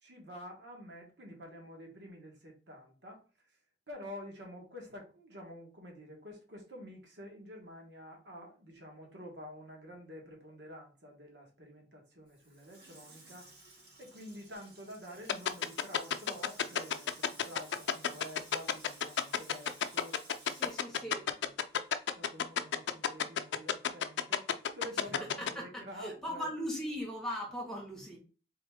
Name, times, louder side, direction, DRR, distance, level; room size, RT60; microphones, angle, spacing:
voice 1, 0.0-3.2 3.9-13.5 14.0-20.3 20.6-21.3 22.1-26.5 28.1-28.2, equal, 80° right, 1.4 m, -49 dB
Water tap faucet / Sink (filling or washing), 12.3-22.0 22.3-22.4, right 2 dB, 65° right, 2.3 m, -56 dB
sound 1, 15.3-25.5, left 8 dB, 85° left, 0.4 m, -29 dB
voice 2, 20.5-21.3 25.4-28.2, equal, 5° left, 1.4 m, -39 dB
4.0 x 3.5 x 3.5 m
head